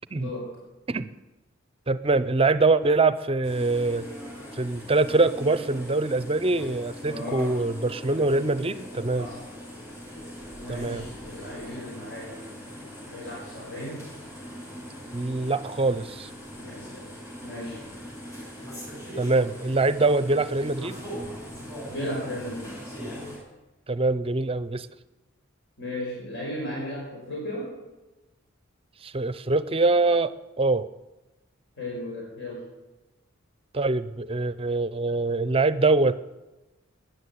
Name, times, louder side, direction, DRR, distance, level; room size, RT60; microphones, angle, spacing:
voice 1, 0.1-0.6 7.0-7.6 9.2-9.4 10.6-12.4 13.0-14.1 16.6-17.8 21.9-22.8 25.8-27.7 31.8-32.7, left 1 dB, 60° left, -4 dB, 5.8 m, -36 dB
voice 2, 1.9-4.0 4.6-9.3 10.7-11.0 15.1-16.3 19.2-21.0 23.9-24.9 29.0-30.9 33.7-36.2, right 3 dB, 30° right, 15 dB, 0.6 m, -24 dB
sound 1, 3.4-23.4, equal, 15° left, 6.5 m, -41 dB
14.5 x 10.5 x 8.6 m, 1.1 s
head